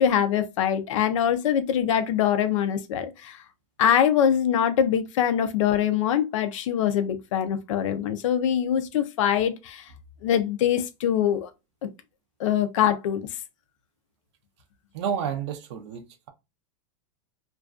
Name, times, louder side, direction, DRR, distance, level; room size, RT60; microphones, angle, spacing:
voice 1, 0.0-3.4 3.8-9.9 10.2-11.5 12.4-13.2, left 9 dB, 70° left, 0.4 m, -23 dB
voice 2, 14.9-16.3, right 8 dB, 60° right, 0.4 m, -30 dB
2.4 x 2.2 x 2.3 m
supercardioid pair, 175°, 17 cm